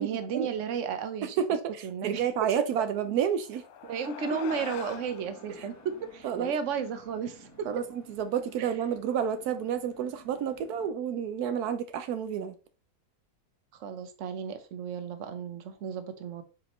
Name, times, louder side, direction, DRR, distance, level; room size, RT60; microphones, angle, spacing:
voice 1, 0.0-1.4 1.8-2.5 3.8-7.7 8.6-8.8 13.8-16.4, right 6 dB, 55° right, 1.2 m, -34 dB
voice 2, 1.4-3.6 6.2-6.5 7.7-12.5, right 8 dB, 80° right, 1.1 m, -30 dB
sound 1, 3.2-8.0, left 8 dB, 75° left, 1.1 m, -45 dB
sound 2, 4.5-10.9, equal, 10° left, 1.4 m, -54 dB
7.4 x 4.9 x 3.1 m
omnidirectional pair, 1.6 m